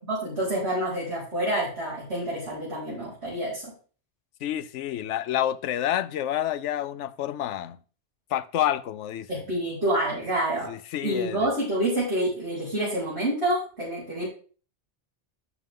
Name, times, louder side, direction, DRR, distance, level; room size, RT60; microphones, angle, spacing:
voice 1, 0.1-3.7 9.3-10.7 11.0-14.3, right 1 dB, 65° right, 5.1 m, -28 dB
voice 2, 4.4-7.8 8.3-9.3 10.7-11.5, left 11 dB, 90° left, 0.9 m, -28 dB
11.0 x 6.4 x 3.7 m
omnidirectional pair, 1.2 m